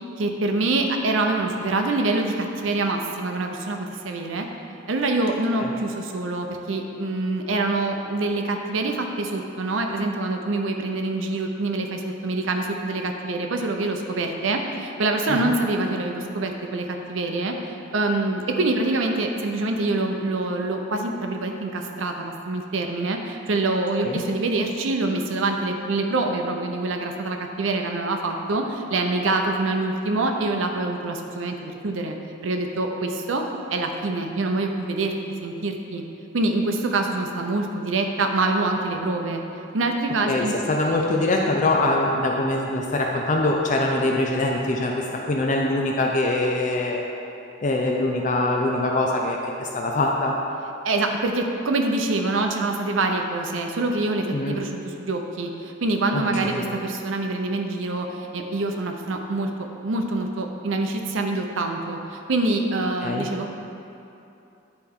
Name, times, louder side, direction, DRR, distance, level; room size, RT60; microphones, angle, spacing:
voice 1, 0.2-4.5 4.9-32.1 32.4-33.4 33.7-35.1 35.4-36.0 36.3-39.4 39.7-40.5 50.8-59.5 59.8-63.5, right 2 dB, 80° right, 3 dB, 0.6 m, -25 dB
voice 2, 40.2-47.0 47.6-50.3 54.3-54.6 56.1-56.7 63.0-63.3, left 2 dB, 40° left, 0 dB, 0.5 m, -23 dB
9.8 x 4.4 x 3.6 m, 2.7 s
head